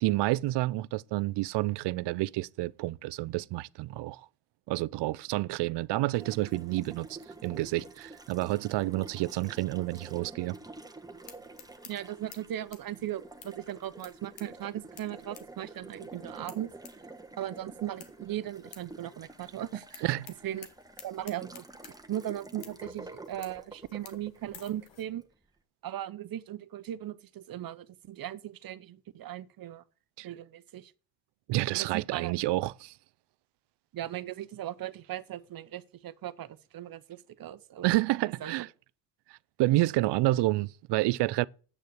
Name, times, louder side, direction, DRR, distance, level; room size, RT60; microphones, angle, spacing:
voice 1, 0.0-4.3 4.7-10.6 20.0-20.2 30.2-30.3 31.5-32.9 37.8-38.7 39.3-41.5, right 18 dB, 65° right, 0.6 m, -29 dB
Water tap faucet, 6.1-25.3, right 2 dB, 10° right, 1.4 m, -49 dB
sound 1, 11.1-25.0, left 8 dB, 70° left, 2.0 m, -55 dB
voice 2, 11.8-16.7 17.4-20.1 20.4-20.7 21.0-25.2 25.8-29.8 30.2-30.9 31.7-32.3 33.9-38.0 38.4-38.5, right 12 dB, 50° right, 1.0 m, -38 dB
8.8 x 6.6 x 8.0 m
supercardioid pair, 70°, 45 cm